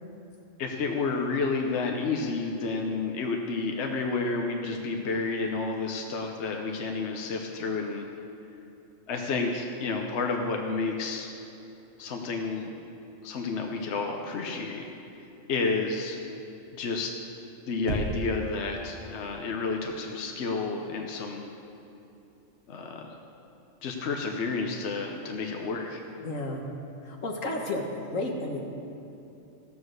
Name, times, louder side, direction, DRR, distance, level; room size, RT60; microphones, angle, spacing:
voice 1, 0.6-8.1 9.1-11.3 12.0-12.7 13.2-14.8 15.5-16.2 16.7-17.1 17.7-21.5 22.7-23.1 23.8-26.0, left 4 dB, 65° left, 2 dB, 1.1 m, -30 dB
Knock, 17.9-18.5, right 1 dB, 55° right, 1.3 m, -31 dB
voice 2, 26.2-26.6 27.0-28.6, left 2 dB, 85° left, 1 dB, 1.7 m, -32 dB
14.5 x 7.1 x 6.4 m, 2.9 s
omnidirectional pair, 1.3 m